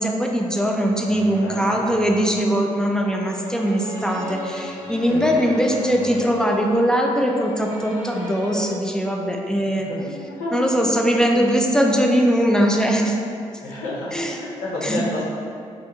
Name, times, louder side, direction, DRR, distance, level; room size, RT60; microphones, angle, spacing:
voice 1, 0.0-9.9 10.5-13.3 14.1-14.3 14.8-15.0, equal, 5° left, 0 dB, 0.3 m, -21 dB
sound 1, 0.7-8.7, equal, 50° left, 1.1 m, -36 dB
voice 2, 1.4-2.0 4.9-5.3 9.8-10.8 13.6-15.2, left 2 dB, 75° left, -7 dB, 0.6 m, -30 dB
2.5 x 2.1 x 2.9 m, 2.4 s
hypercardioid pair, 45°, 16 cm